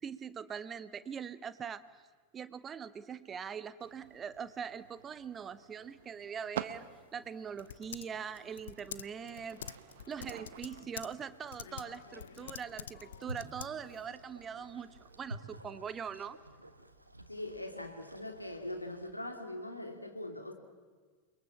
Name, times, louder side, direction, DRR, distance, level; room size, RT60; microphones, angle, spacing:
voice 1, 0.0-1.8 2.3-6.9 7.1-9.6 10.1-16.4, right 7 dB, 20° right, 1.2 m, -42 dB
sound 1, 3.8-15.3, right 11 dB, 55° right, 1.2 m, -50 dB
Typing, 6.7-14.1, left 9 dB, 65° left, 0.7 m, -48 dB
sound 2, 11.8-19.1, right 1 dB, 85° right, 1.5 m, -51 dB
voice 2, 17.3-20.5, left 1 dB, 85° left, 2.9 m, -41 dB
29.0 x 23.0 x 7.3 m
figure-of-eight pair, 90°, 0 cm